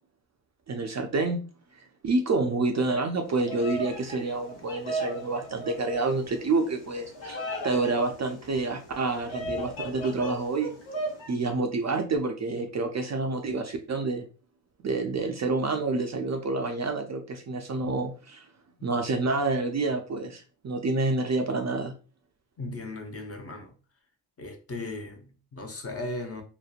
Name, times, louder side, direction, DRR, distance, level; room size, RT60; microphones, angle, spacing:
voice 1, 0.7-1.4 2.0-10.7 11.3-14.3 14.8-18.5 18.8-21.9, right 3 dB, 40° right, 0.4 m, -28 dB
Bird vocalization bird call bird song, 3.3-11.3, right 1 dB, 85° left, 1.0 m, -36 dB
voice 2, 22.6-23.7 24.4-26.4, left 2 dB, 30° left, 0.5 m, -37 dB
2.9 x 2.1 x 2.4 m
cardioid pair, 90°, 47 cm